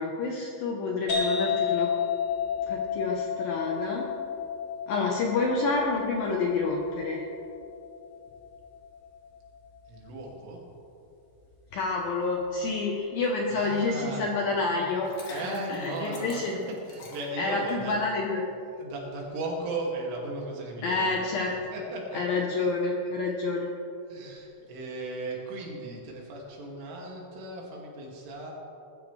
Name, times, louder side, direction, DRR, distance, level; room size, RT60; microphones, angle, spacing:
voice 1, 0.0-1.9 2.7-4.1 4.9-7.2 11.7-16.5 17.4-18.5 20.8-21.5 22.1-23.7, left 3 dB, 75° left, -1 dB, 2.1 m, -28 dB
sound 1, 1.1-8.5, left 7 dB, 30° left, 4.0 m, -31 dB
voice 2, 9.9-10.6 13.5-14.3 15.3-16.4 16.9-18.0 18.8-21.4 21.7-22.4 24.1-28.5, right 2 dB, 85° right, -2 dB, 4.9 m, -36 dB
Liquid, 14.9-17.9, left 2 dB, 50° left, 2.9 m, -45 dB
21.0 x 12.5 x 3.3 m, 2.7 s
omnidirectional pair, 5.5 m